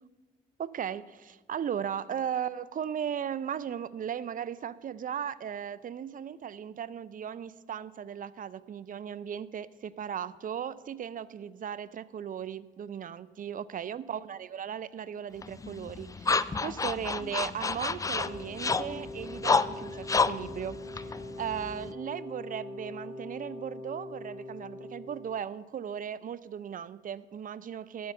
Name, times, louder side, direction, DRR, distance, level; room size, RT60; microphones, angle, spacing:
voice 1, 0.6-28.1, right 8 dB, 45° right, 17 dB, 0.5 m, -37 dB
sound 1, 15.4-21.9, left 4 dB, 15° left, 0.4 m, -30 dB
Wind instrument woodwind instrument, 18.1-25.4, left 2 dB, 55° left, 2.0 m, -43 dB
13.5 x 5.5 x 6.4 m, 1.3 s
supercardioid pair, 60°, 20 cm